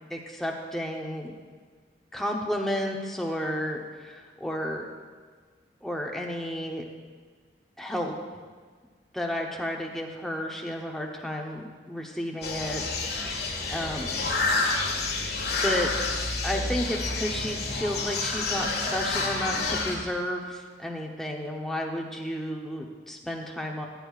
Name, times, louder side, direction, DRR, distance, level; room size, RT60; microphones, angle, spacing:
voice 1, 0.1-1.3 2.1-4.9 5.8-6.8 7.8-8.1 9.1-13.4 13.7-14.2 15.6-15.9 16.4-23.9, equal, ahead, 0 dB, 0.8 m, -32 dB
sound 1, 12.4-20.0, left 3 dB, 60° left, 1.7 m, -29 dB
14.0 x 10.0 x 2.4 m, 1.5 s
head